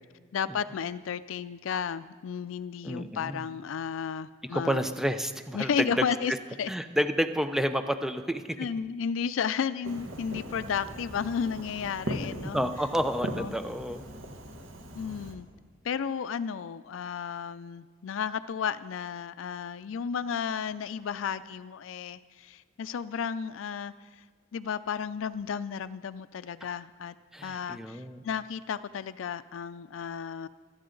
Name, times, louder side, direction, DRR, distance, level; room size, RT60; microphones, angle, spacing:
voice 1, 0.3-4.8 5.5-6.3 6.6-6.7 8.6-12.6 13.4-13.5 14.9-15.5 15.8-24.2 24.5-27.1 27.4-30.5, left 7 dB, 90° left, 13 dB, 0.4 m, -33 dB
voice 2, 2.8-3.5 4.5-6.0 6.7-8.6 12.5-14.0 27.3-28.2, equal, ahead, 8 dB, 0.6 m, -30 dB
Fireworks, 9.8-15.3, equal, 90° right, 1.5 m, -39 dB
25.5 x 9.5 x 3.9 m, 1.5 s
head